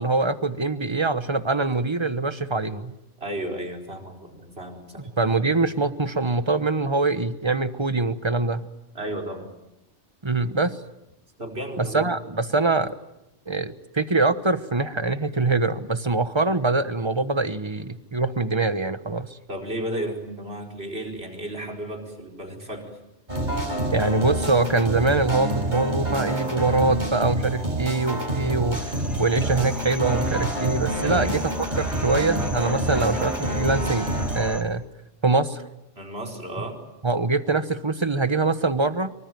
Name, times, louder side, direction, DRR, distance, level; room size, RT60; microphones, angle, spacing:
voice 1, 0.0-2.9 5.2-8.7 10.2-10.8 11.8-13.0 13.5-19.4 23.9-31.4 31.7-34.1 34.3-34.9 35.2-35.7 37.0-39.1, right 3 dB, 25° right, 12 dB, 1.2 m, -24 dB
voice 2, 3.2-5.1 8.9-9.5 11.4-12.1 19.5-23.0 31.0-31.6 35.9-36.8, right 1 dB, 60° right, 2 dB, 5.0 m, -33 dB
sound 1, 23.3-34.4, right 1 dB, 40° right, 5.3 m, -27 dB
sound 2, 28.7-34.6, equal, ahead, 2.2 m, -37 dB
25.5 x 24.5 x 9.3 m, 0.87 s
omnidirectional pair, 1.2 m